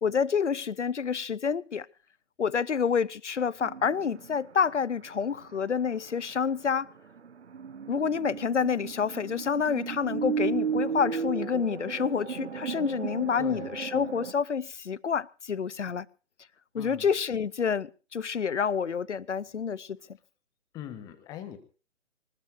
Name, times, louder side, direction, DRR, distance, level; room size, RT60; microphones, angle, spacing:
voice 1, 0.0-1.9 2.4-6.9 7.9-16.1 16.7-20.0, left 6 dB, 65° left, 0.8 m, -28 dB
sound 1, 3.6-5.1 5.3-5.9 6.3-6.4 7.2-14.3, right 6 dB, 60° right, 0.9 m, -34 dB
voice 2, 13.4-13.7 16.8-17.1 20.7-21.6, left 10 dB, 10° left, 1.3 m, -41 dB
24.5 x 20.0 x 2.6 m
figure-of-eight pair, 140°, 39 cm